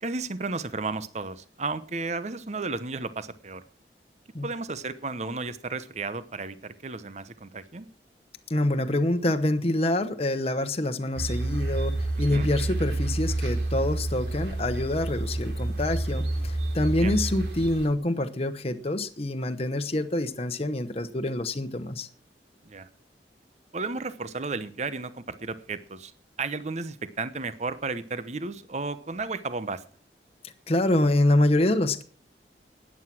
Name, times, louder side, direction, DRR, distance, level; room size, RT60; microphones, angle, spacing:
voice 1, 0.0-3.6 4.4-7.9 12.3-12.5 17.0-17.2 22.7-22.9 23.7-26.1 26.4-29.8, right 3 dB, 40° right, 0.8 m, -33 dB
voice 2, 8.5-22.1 30.7-32.0, left 1 dB, 35° left, 1.0 m, -26 dB
sound 1, 11.2-17.9, right 2 dB, 75° right, 3.1 m, -29 dB
13.5 x 9.8 x 6.0 m
head